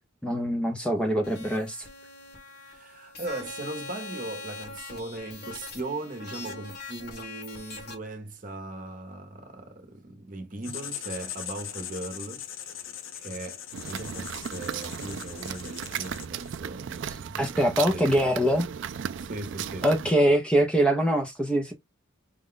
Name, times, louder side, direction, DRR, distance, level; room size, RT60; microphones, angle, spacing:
voice 1, 0.2-1.9 17.4-18.7 19.8-21.7, right 1 dB, 5° left, 0.6 m, -23 dB
sound 1, 1.2-7.9, left 3 dB, 50° left, 1.4 m, -42 dB
voice 2, 2.6-12.9 13.2-18.1 19.2-19.9, right 2 dB, 40° right, 0.9 m, -39 dB
Writing, 10.6-16.6, left 10 dB, 80° left, 0.7 m, -40 dB
sound 2, 13.7-20.1, right 8 dB, 65° right, 0.3 m, -36 dB
5.1 x 2.3 x 3.7 m
head